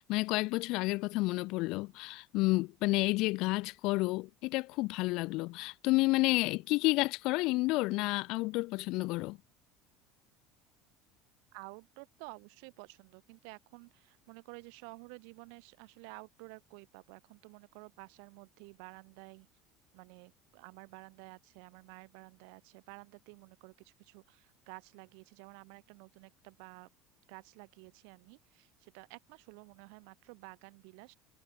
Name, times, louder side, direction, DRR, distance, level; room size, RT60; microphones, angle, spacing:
voice 1, 0.0-9.4, left 22 dB, 65° left, 1.0 m, -30 dB
voice 2, 11.5-19.5 19.9-26.9 27.3-31.1, right 40 dB or more, 75° right, 6.6 m, -52 dB
supercardioid pair, 105°, 0 cm